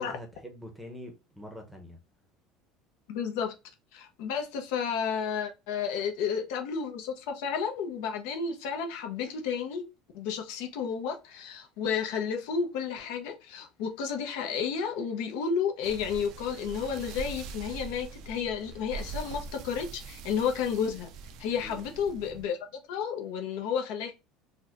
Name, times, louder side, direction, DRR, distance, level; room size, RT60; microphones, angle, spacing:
voice 1, 0.0-2.0 21.6-21.8, left 1 dB, 5° right, 0.7 m, -44 dB
voice 2, 3.1-3.5 3.9-9.8 10.1-21.1 21.4-22.6 22.9-24.1, left 6 dB, 75° left, 0.7 m, -32 dB
sound 1, 15.8-22.4, right 5 dB, 55° right, 0.3 m, -42 dB
4.1 x 2.2 x 2.4 m
cardioid pair, 140°, 0 cm